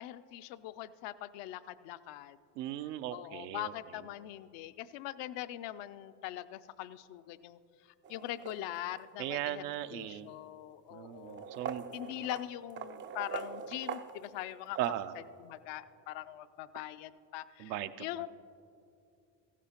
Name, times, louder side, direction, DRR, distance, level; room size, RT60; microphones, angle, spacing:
voice 1, 0.0-2.4 3.1-7.6 8.1-9.6 9.9-11.5 11.9-14.8 15.4-18.3, left 14 dB, 65° left, 14 dB, 0.6 m, -42 dB
voice 2, 2.6-3.7 9.2-10.3 10.9-11.8 14.8-15.1 17.6-18.1, right 12 dB, 80° right, 10 dB, 0.6 m, -37 dB
sound 1, 8.0-9.1 10.0-10.1 11.1-15.0, right 7 dB, 30° right, 0.3 m, -43 dB
15.0 x 12.0 x 2.9 m, 2.6 s
hypercardioid pair, 70°, 47 cm